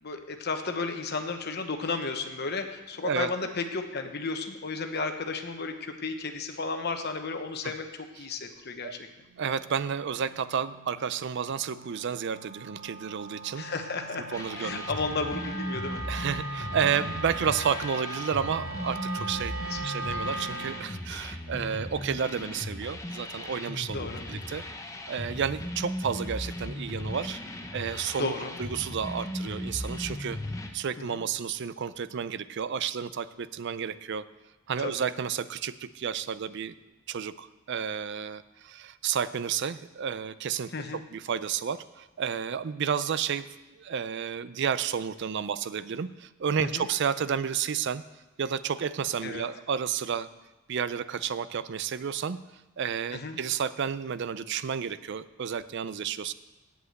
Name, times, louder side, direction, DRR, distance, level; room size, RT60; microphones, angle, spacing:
voice 1, 0.0-8.9 13.5-16.0 19.7-20.0 23.9-24.2 28.2-28.6 34.8-34.9 40.7-41.0 46.6-46.9 49.2-49.4 53.1-53.4, left 4 dB, 50° left, 6 dB, 1.0 m, -33 dB
Wind instrument woodwind instrument, 9.3-20.9, right 2 dB, 80° right, 1.4 m, -40 dB
voice 2, 9.4-13.6 14.3-14.8 16.1-27.4 27.7-28.3 28.6-30.4 30.7-34.3 34.7-36.7 37.1-40.7 41.1-43.5 43.8-48.0 48.4-50.3 50.7-52.4 52.8-56.3, right 7 dB, 55° right, 15 dB, 0.4 m, -31 dB
sound 1, 14.3-30.7, left 1 dB, 15° left, 0.8 m, -37 dB
8.1 x 8.0 x 8.0 m, 1.1 s
head